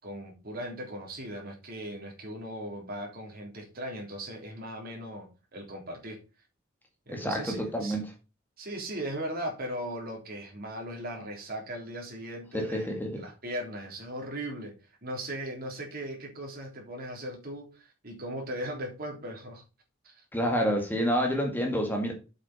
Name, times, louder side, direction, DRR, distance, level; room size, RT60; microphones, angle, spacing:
voice 1, 0.0-6.2 7.1-8.0 8.6-12.9 13.2-19.6 20.0-20.2, right 1 dB, 50° right, 3.6 m, -38 dB
voice 2, 7.1-8.0 12.5-13.2 20.3-22.1, equal, 10° left, 1.9 m, -28 dB
7.9 x 6.5 x 4.3 m
head